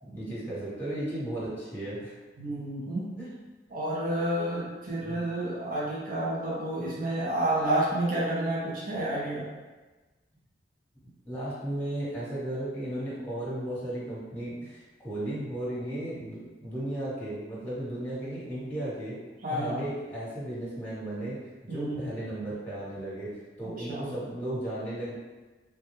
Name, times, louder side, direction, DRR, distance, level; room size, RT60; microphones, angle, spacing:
voice 1, 0.0-2.1 3.2-3.3 4.9-5.3 11.2-19.2 19.5-21.4 21.6-23.3 23.6-25.1, right 1 dB, 10° left, -9 dB, 1.2 m, -35 dB
voice 2, 2.4-3.1 3.7-9.5 19.4-19.8 21.7-22.0 23.8-24.1, right 1 dB, 50° right, -7 dB, 0.8 m, -30 dB
3.5 x 2.3 x 3.0 m, 1.2 s
head